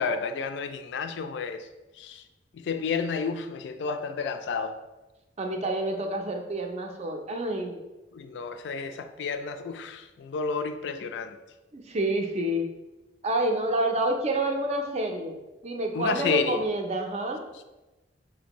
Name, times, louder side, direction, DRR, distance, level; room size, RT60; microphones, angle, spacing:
voice 1, 0.0-1.7 2.0-2.2 2.5-4.8 8.1-11.4 15.9-16.6, left 5 dB, 70° left, 9 dB, 0.3 m, -31 dB
voice 2, 5.4-7.8 11.7-12.6 13.2-15.4 15.6-17.4, right 1 dB, 35° right, 3 dB, 0.5 m, -28 dB
5.0 x 2.6 x 2.9 m, 1.1 s
head